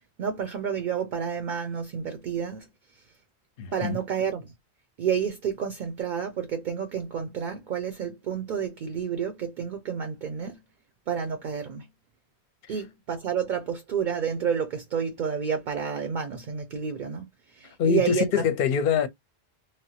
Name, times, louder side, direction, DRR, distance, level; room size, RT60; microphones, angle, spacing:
voice 1, 0.2-2.7 3.7-4.5 5.0-10.6 11.1-11.9 12.7-17.3 17.5-18.3, right 7 dB, 55° right, 0.6 m, -30 dB
voice 2, 3.6-4.0 17.8-19.1, left 7 dB, 65° left, 0.7 m, -24 dB
3.1 x 2.1 x 2.8 m
omnidirectional pair, 1.1 m